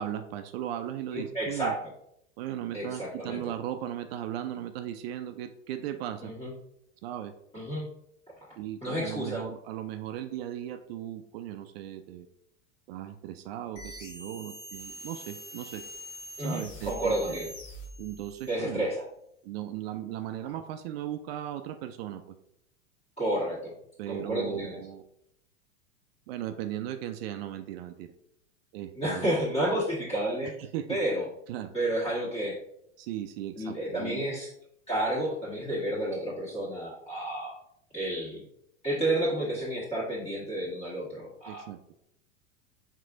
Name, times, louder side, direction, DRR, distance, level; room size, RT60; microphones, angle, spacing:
voice 1, 0.0-1.7 2.4-6.3 7.0-7.3 8.6-12.3 12.9-15.8 16.4-17.4 18.0-18.8 19.4-22.4 24.0-25.0 26.3-28.1 28.7-29.3 30.6-31.0 31.5-31.7 33.0-34.2 41.5-41.8, right 11 dB, 55° right, 9 dB, 0.4 m, -37 dB
voice 2, 1.1-1.8 2.7-3.4 6.2-6.5 7.5-7.8 8.8-9.4 16.4-17.5 18.5-19.0 20.4-20.5 23.2-23.7 24.1-24.8 28.9-30.5 30.9-31.2 31.7-32.6 33.6-34.5 34.9-37.5 37.9-38.4 38.8-41.6, right 1 dB, 15° left, -8 dB, 1.3 m, -30 dB
sound 1, 13.7-18.6, right 1 dB, 75° left, 1.3 m, -44 dB
4.7 x 3.7 x 2.5 m, 0.76 s
hypercardioid pair, 95°, 37 cm